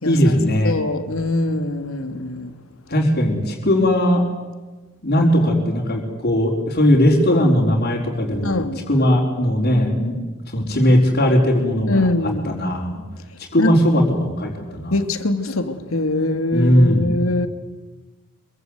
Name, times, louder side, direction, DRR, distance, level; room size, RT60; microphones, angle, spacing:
voice 1, 0.0-0.7 2.9-4.2 5.0-10.2 10.5-12.1 12.4-13.0 13.5-15.0 16.5-17.1, equal, 50° left, 4.5 m, -18 dB
voice 2, 0.6-2.5 8.4-8.9 11.9-12.6 13.6-13.8 14.9-17.5, left 2 dB, 75° left, 2.3 m, -22 dB
26.5 x 24.0 x 8.2 m
head